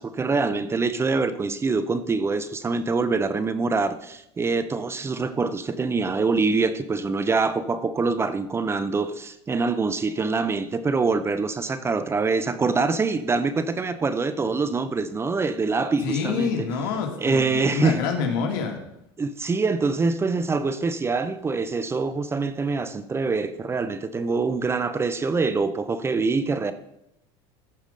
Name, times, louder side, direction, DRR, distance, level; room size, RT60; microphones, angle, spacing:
voice 1, 0.0-16.5 17.2-18.0 19.2-26.7, right 4 dB, 20° right, 12 dB, 0.7 m, -25 dB
voice 2, 16.0-18.8, left 5 dB, 80° left, 3 dB, 2.1 m, -27 dB
14.0 x 5.0 x 5.2 m, 0.81 s
supercardioid pair, 115°, 13 cm